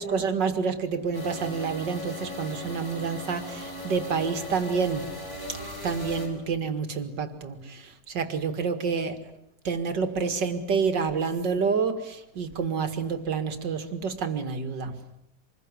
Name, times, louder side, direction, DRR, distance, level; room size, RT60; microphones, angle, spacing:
voice 1, 0.0-5.1 5.8-9.2 9.6-14.9, right 5 dB, 55° right, 9 dB, 2.7 m, -28 dB
sound 1, 1.1-6.3, left 1 dB, 30° left, 5.9 m, -38 dB
26.5 x 22.0 x 9.9 m, 0.78 s
omnidirectional pair, 2.3 m